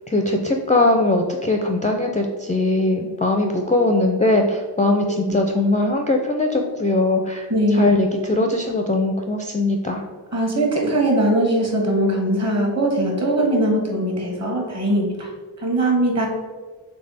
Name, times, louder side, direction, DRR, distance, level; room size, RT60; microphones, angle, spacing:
voice 1, 0.1-10.0, left 2 dB, 20° left, 2 dB, 0.4 m, -20 dB
voice 2, 7.5-7.9 10.3-15.3 15.6-16.3, right 1 dB, 35° right, 0 dB, 1.4 m, -20 dB
3.4 x 3.4 x 4.0 m, 1.4 s
cardioid pair, 55°, 45 cm